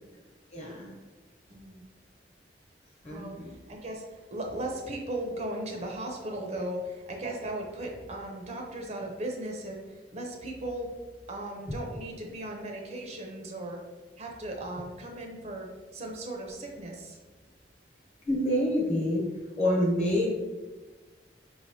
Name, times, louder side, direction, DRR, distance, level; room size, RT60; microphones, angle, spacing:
voice 1, 0.5-0.9 3.0-3.5 18.2-19.2 19.6-20.3, equal, 40° left, -3 dB, 1.1 m, -27 dB
voice 2, 1.5-1.8 3.1-10.9 11.3-13.8 14.2-17.2, right 1 dB, 40° right, 1 dB, 0.5 m, -37 dB
4.8 x 3.2 x 2.6 m, 1.3 s
head